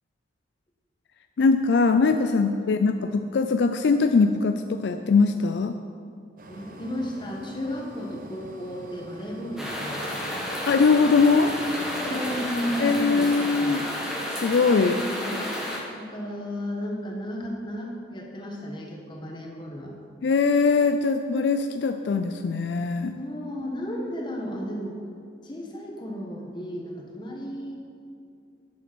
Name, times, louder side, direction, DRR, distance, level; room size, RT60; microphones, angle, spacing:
voice 1, 1.4-5.8 10.7-11.6 12.8-13.8 14.4-15.0 20.2-23.1, left 4 dB, 65° left, 8 dB, 0.4 m, -21 dB
sound 1, 6.4-13.3, right 1 dB, 45° right, 0.9 m, -46 dB
voice 2, 6.5-10.3 11.9-13.9 14.6-15.5 15.9-19.9 23.1-25.0 25.4-27.8, equal, 25° left, -1 dB, 1.5 m, -34 dB
sound 2, 9.6-15.8, equal, 5° right, 1.4 m, -31 dB
8.9 x 7.0 x 6.1 m, 2.5 s
head